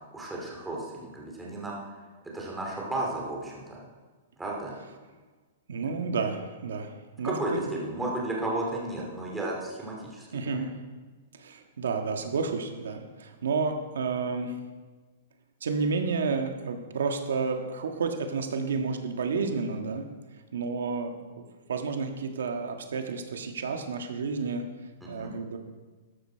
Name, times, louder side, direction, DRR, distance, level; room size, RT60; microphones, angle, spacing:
voice 1, 0.1-1.8 2.3-3.8 4.4-4.7 7.2-7.5 7.8-10.7 25.2-25.3, right 2 dB, 5° right, -3 dB, 2.6 m, -33 dB
voice 2, 5.7-7.8 10.3-10.7 11.3-14.6 15.6-20.0 20.5-24.6 25.1-25.6, right 4 dB, 90° right, 5 dB, 1.6 m, -31 dB
13.5 x 11.5 x 4.6 m, 1.4 s
hypercardioid pair, 160°, 0 cm